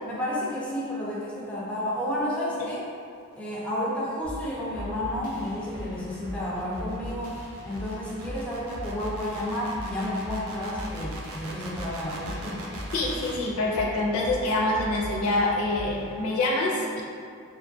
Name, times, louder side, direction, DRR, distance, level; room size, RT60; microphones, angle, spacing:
voice 1, 0.0-2.8 3.4-7.4 7.6-12.7, left 1 dB, 5° left, -7 dB, 0.4 m, -31 dB
sound 1, 4.2-16.2, equal, 40° right, 0.6 m, -40 dB
sound 2, 4.2-13.4, right 2 dB, 90° right, 0.4 m, -43 dB
voice 2, 12.9-17.0, left 2 dB, 75° left, -3 dB, 0.4 m, -26 dB
2.5 x 2.3 x 2.6 m, 2.4 s
head